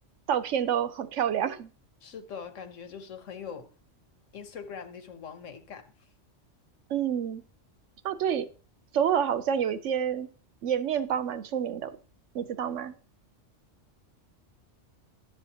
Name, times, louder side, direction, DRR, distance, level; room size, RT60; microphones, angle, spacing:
voice 1, 0.3-1.7 6.9-7.4 8.0-8.5 8.9-10.3 10.6-12.0 12.3-12.9, right 8 dB, 80° right, 1.0 m, -28 dB
voice 2, 2.0-3.7 4.3-5.9 12.6-12.8, left 6 dB, 85° left, 1.4 m, -42 dB
11.0 x 7.0 x 2.9 m
omnidirectional pair, 1.3 m